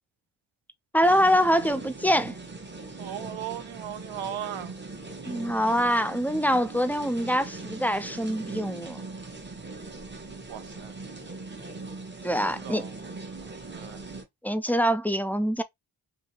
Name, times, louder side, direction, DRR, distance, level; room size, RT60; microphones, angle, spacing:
voice 1, 0.9-2.4 5.3-9.0 12.2-12.8 14.4-15.6, equal, 5° left, 0.3 m, -24 dB
sound 1, 1.0-14.2, right 3 dB, 25° right, 1.0 m, -40 dB
voice 2, 3.0-4.7 10.5-10.9 12.6-12.9 13.4-14.0, right 11 dB, 75° right, 0.6 m, -37 dB
2.8 x 2.6 x 2.7 m
cardioid pair, 45°, 47 cm